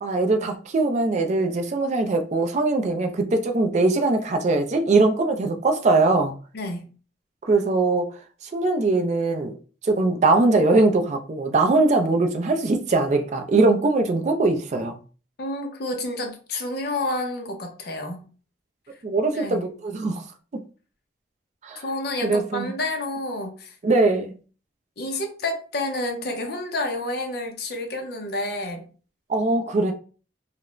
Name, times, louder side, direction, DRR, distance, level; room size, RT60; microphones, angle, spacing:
voice 1, 0.0-6.3 7.5-8.1 8.4-9.5 9.8-15.0 19.0-20.3 21.6-21.8 22.2-22.7 23.8-24.3 29.3-29.9, right 3 dB, 40° right, 0.3 m, -21 dB
voice 2, 6.5-6.9 15.4-18.3 19.3-19.7 21.8-23.8 25.0-28.9, left 2 dB, 55° left, 0.5 m, -29 dB
2.4 x 2.0 x 3.0 m
head